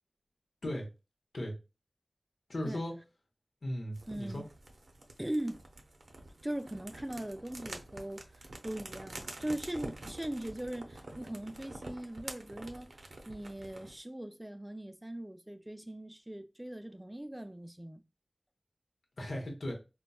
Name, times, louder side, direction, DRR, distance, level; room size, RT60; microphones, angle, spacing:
voice 1, 2.5-2.9 3.6-4.4 19.2-19.7, left 1 dB, 85° left, 0.8 m, -36 dB
sound 1, 3.9-14.0, right 2 dB, 80° right, 0.5 m, -47 dB
voice 2, 4.1-4.5 5.2-5.6 6.4-12.9 13.3-18.0, right 1 dB, 15° right, 0.4 m, -40 dB
4.0 x 2.2 x 2.3 m
wide cardioid pair, 50°, 0 cm